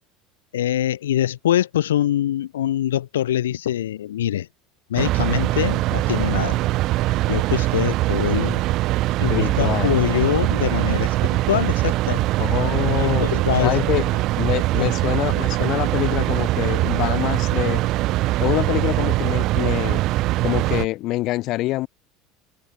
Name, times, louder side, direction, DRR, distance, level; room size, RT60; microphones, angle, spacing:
voice 1, 0.5-4.5 4.9-6.6 7.3-8.6 9.2-12.2 13.0-14.0 14.8-15.0, left 12 dB, 70° left, 0.4 m, -24 dB
sound 1, 5.0-20.9, right 17 dB, 50° right, 0.6 m, -22 dB
voice 2, 9.2-9.9 12.4-13.3 13.6-17.8 18.4-20.0 20.4-21.9, left 17 dB, 50° left, 1.5 m, -25 dB
figure-of-eight pair, 70°, 0 cm